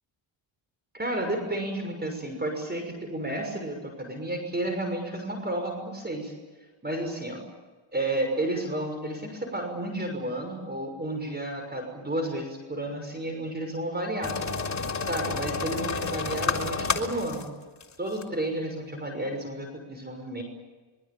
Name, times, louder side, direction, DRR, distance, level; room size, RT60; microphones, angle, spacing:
voice 1, 0.9-6.3 6.8-7.4 7.9-14.4 15.0-17.5 18.0-20.4, right 1 dB, 20° right, 4 dB, 6.2 m, -31 dB
sound 1, 14.2-17.4 17.8-17.9 18.2-18.3, left 4 dB, 35° left, 3.5 m, -30 dB
25.5 x 23.5 x 8.9 m, 1.3 s
cardioid pair, 85°, 46 cm